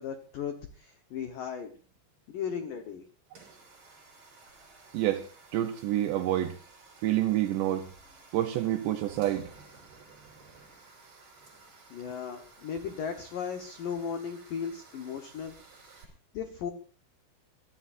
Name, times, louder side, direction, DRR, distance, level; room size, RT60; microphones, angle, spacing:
voice 1, 0.0-1.7 2.3-3.0 11.9-15.6 16.3-16.7, left 7 dB, 85° left, 1.9 m, -36 dB
sound 1, 3.3-16.0, right 4 dB, 35° right, 6.0 m, -54 dB
voice 2, 4.9-6.6 7.0-7.9 8.3-9.5, right 13 dB, 80° right, 2.6 m, -28 dB
24.5 x 15.0 x 2.6 m
omnidirectional pair, 5.9 m